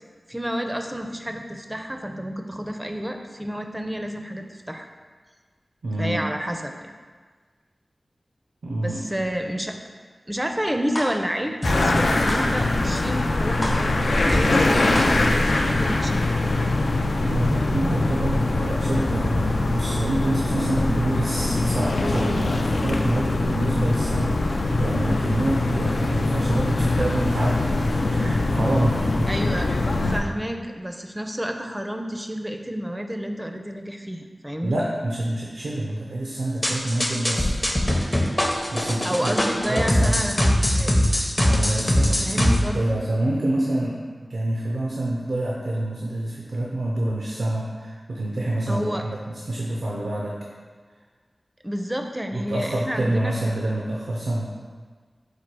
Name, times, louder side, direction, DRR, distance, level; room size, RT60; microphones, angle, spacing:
voice 1, 0.3-4.9 6.0-6.9 8.8-9.8 10.3-16.7 29.3-29.7 30.1-34.8 39.0-40.9 42.0-43.0 48.7-49.0 51.6-53.3, equal, 15° right, 4 dB, 0.4 m, -30 dB
voice 2, 5.8-6.2 8.6-9.2 17.2-29.4 34.6-37.5 38.7-39.4 39.7-40.2 41.4-44.0 44.3-50.4 52.3-54.5, right 1 dB, 85° right, -3 dB, 0.4 m, -27 dB
sound 1, 10.9-11.0 11.6-11.7 12.3-12.4 12.9-13.0 13.6-13.7 14.3-14.4 14.9-15.0, left 1 dB, 45° left, 1.0 m, -26 dB
sound 2, 11.6-30.2, left 2 dB, 85° left, 0.3 m, -22 dB
sound 3, 36.6-42.6, equal, 25° left, 0.6 m, -21 dB
4.2 x 2.3 x 4.6 m, 1.5 s
cardioid pair, 40°, 0 cm